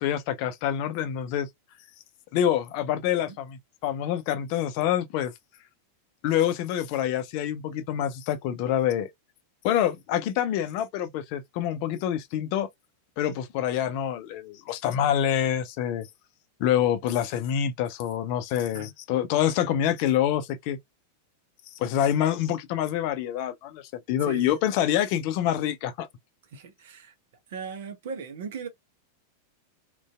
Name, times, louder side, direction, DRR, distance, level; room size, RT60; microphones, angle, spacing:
voice 1, 0.0-1.5 2.3-5.3 6.2-9.1 9.6-12.7 13.2-16.1 16.6-20.8 21.8-23.8 24.1-26.1, left 10 dB, 45° left, 0.4 m, -26 dB
voice 2, 24.2-24.5 26.5-27.1 27.5-28.7, right 5 dB, 55° right, 0.7 m, -38 dB
2.5 x 2.2 x 2.2 m
figure-of-eight pair, 90°, 0 cm